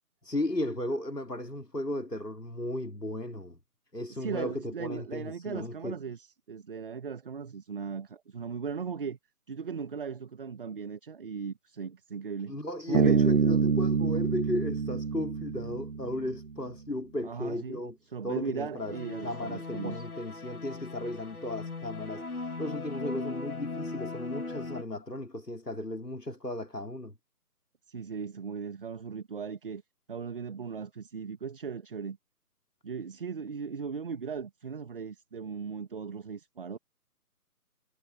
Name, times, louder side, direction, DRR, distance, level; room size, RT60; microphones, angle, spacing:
voice 1, 0.2-3.6 3.9-6.0 12.5-18.0 18.2-27.1, left 1 dB, 90° left, 3.4 m, -35 dB
voice 2, 4.1-9.2 9.5-12.6 12.9-13.3 17.2-20.1 27.9-29.8 30.1-32.2 32.8-36.8, right 6 dB, 35° right, 1.5 m, -38 dB
Bass guitar, 12.9-16.4, right 5 dB, 55° right, 1.0 m, -26 dB
sound 1, 18.8-24.8, left 3 dB, 70° left, 2.6 m, -38 dB
figure-of-eight pair, 150°, 47 cm